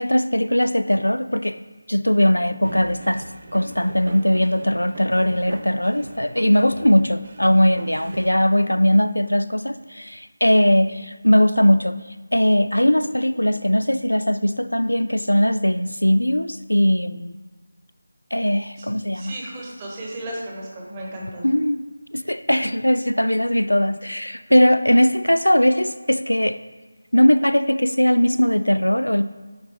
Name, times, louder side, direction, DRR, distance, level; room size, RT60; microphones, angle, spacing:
voice 1, 0.0-1.6 1.9-12.0 12.3-17.4 18.3-19.4 21.4-26.6 27.1-29.2, equal, 90° left, 12 dB, 0.3 m, -19 dB
sound 1, 2.6-8.3, right 2 dB, 40° right, 0.6 m, -39 dB
voice 2, 19.1-21.5, right 1 dB, 20° right, -2 dB, 1.1 m, -34 dB
9.3 x 4.1 x 3.0 m, 1.3 s
figure-of-eight pair, 165°, 0 cm